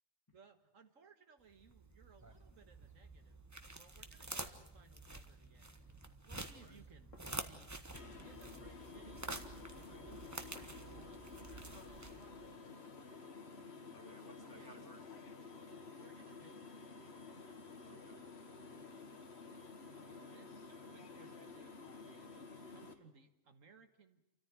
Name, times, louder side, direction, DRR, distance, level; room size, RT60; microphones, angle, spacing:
voice 1, 0.3-3.4 3.7-6.0 6.3-9.5 9.8-11.5 11.9-12.2 14.4-14.7 15.7-16.7 19.9-22.4 22.7-24.2, right 5 dB, 75° right, 7 dB, 1.9 m, -64 dB
sound 1, 1.5-12.5, right 2 dB, 15° right, 1.1 m, -49 dB
sound 2, 5.7-12.5, left 3 dB, 70° left, 2.4 m, -68 dB
voice 2, 6.5-6.8 9.8-10.1 12.6-13.0 13.9-15.1 17.9-18.3, equal, 15° left, 3 dB, 2.4 m, -60 dB
sound 3, 7.9-22.9, left 4 dB, 55° left, 1.8 m, -52 dB
28.0 x 14.0 x 9.4 m, 0.87 s
omnidirectional pair, 1.4 m